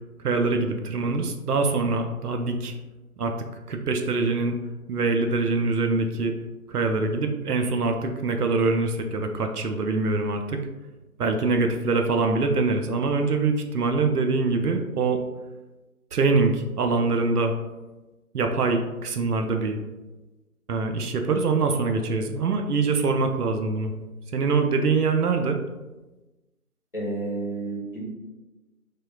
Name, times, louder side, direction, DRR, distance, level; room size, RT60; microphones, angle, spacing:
voice 1, 0.2-2.7 3.2-3.3 3.7-4.6 4.9-6.4 6.7-10.7 11.2-15.2 16.1-17.5 18.3-19.8 20.7-23.9 24.3-25.6, right 3 dB, 85° right, 5 dB, 0.5 m, -24 dB
voice 2, 26.9-28.0, right 2 dB, 35° left, -6 dB, 0.8 m, -30 dB
3.5 x 2.3 x 2.3 m, 1.1 s
figure-of-eight pair, 170°, 45 cm